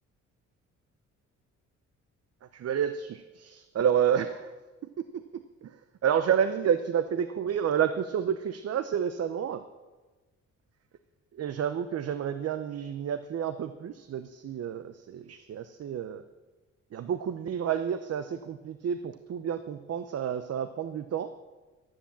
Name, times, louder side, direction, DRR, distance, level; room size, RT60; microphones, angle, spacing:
voice 1, 2.5-4.5 5.0-5.7 6.0-9.6 11.4-16.2 16.9-21.3, right 8 dB, 55° right, 11 dB, 0.8 m, -30 dB
13.0 x 11.5 x 7.3 m, 1.2 s
cardioid pair, 90°, 30 cm